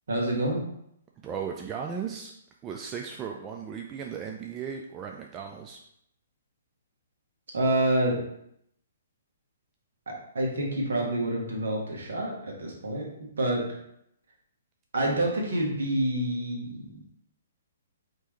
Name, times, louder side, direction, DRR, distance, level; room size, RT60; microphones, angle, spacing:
voice 1, 0.1-0.7 7.5-8.2 10.3-13.1 13.4-13.6 14.9-17.0, right 1 dB, 60° right, -1 dB, 1.2 m, -27 dB
voice 2, 1.2-2.3 2.6-5.8, right 7 dB, 20° right, 1 dB, 0.3 m, -36 dB
4.5 x 2.8 x 3.0 m, 0.75 s
figure-of-eight pair, 125°, 0 cm